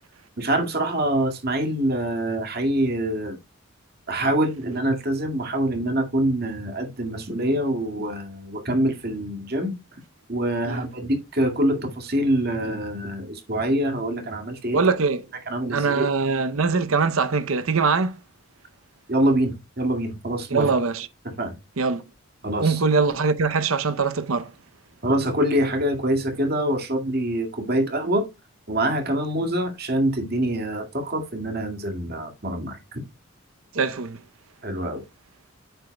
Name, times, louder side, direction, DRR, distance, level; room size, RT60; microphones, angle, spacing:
voice 1, 0.4-3.4 4.1-9.7 10.3-14.8 15.5-16.1 19.1-20.7 21.3-21.6 22.4-22.8 25.0-28.3 28.7-33.0 34.6-35.0, right 1 dB, 50° right, 2.1 m, -25 dB
voice 2, 14.7-15.2 15.7-18.2 20.5-21.1 21.8-22.0 22.6-24.5 33.7-34.2, right 4 dB, 85° right, 0.8 m, -22 dB
9.0 x 7.8 x 2.3 m
head